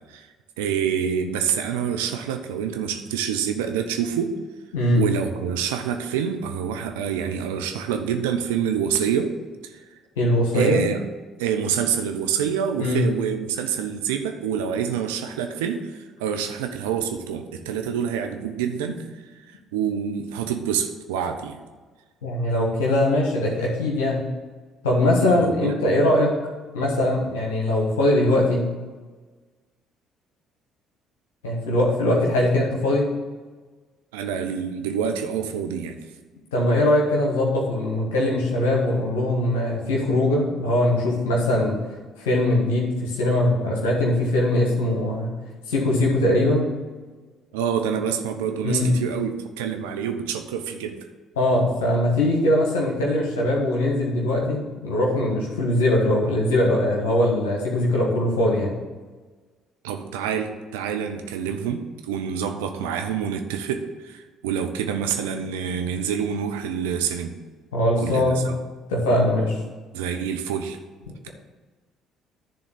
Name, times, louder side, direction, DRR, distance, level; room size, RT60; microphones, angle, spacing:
voice 1, 0.6-4.3 5.0-9.3 9.6-9.8 10.5-11.0 11.4-19.0 19.5-21.6 25.3-25.8 34.1-36.0 47.5-51.0 59.8-67.4 68.0-68.6 69.9-70.8, right 8 dB, 80° right, 6 dB, 0.6 m, -27 dB
voice 2, 10.2-10.8 12.8-13.0 22.2-24.3 24.8-26.3 26.7-28.7 31.4-33.1 36.5-41.8 42.2-45.3 45.7-46.7 48.6-48.9 51.4-58.7 67.7-68.5 68.9-69.6, left 1 dB, 80° left, -3 dB, 1.4 m, -21 dB
10.5 x 3.8 x 6.8 m, 1.4 s
hypercardioid pair, 50°, 0 cm